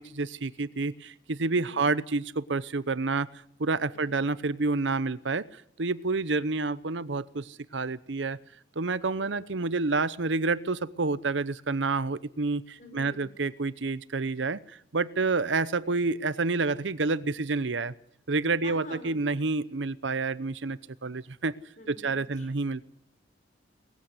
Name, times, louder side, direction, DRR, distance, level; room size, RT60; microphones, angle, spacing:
voice 1, 0.0-3.3 3.6-5.5 5.8-8.4 8.8-17.9 18.3-21.5 21.9-22.8, right 3 dB, 80° right, 16 dB, 0.9 m, -29 dB
voice 2, 1.5-1.8 3.9-4.2 9.2-9.5 12.8-13.3 18.6-19.2 21.8-22.5, left 2 dB, 40° left, 5 dB, 5.1 m, -46 dB
20.0 x 15.0 x 9.7 m, 0.68 s
head